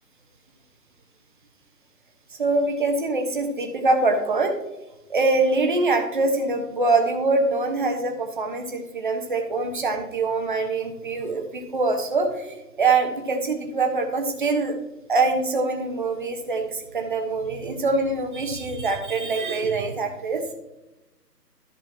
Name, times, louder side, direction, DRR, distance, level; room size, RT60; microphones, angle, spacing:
voice 1, 2.3-4.6 5.1-14.7 15.1-20.4, right 3 dB, 30° right, 3 dB, 1.2 m, -24 dB
13.5 x 5.5 x 2.8 m, 0.96 s
figure-of-eight pair, 160°, 49 cm